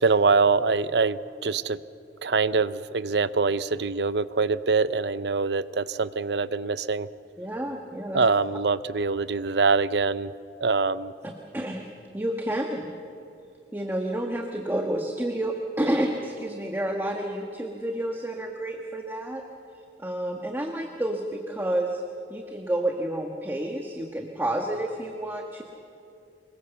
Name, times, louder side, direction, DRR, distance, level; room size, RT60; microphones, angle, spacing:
voice 1, 0.0-1.8 2.2-7.1 8.1-10.3 10.6-11.1, right 4 dB, 70° right, 15 dB, 0.7 m, -24 dB
voice 2, 7.4-8.2 11.2-11.8 12.1-12.9 13.7-19.4 20.0-22.0 22.3-25.6, right 1 dB, 10° right, 2 dB, 1.3 m, -30 dB
25.0 x 22.0 x 7.0 m, 2.7 s
head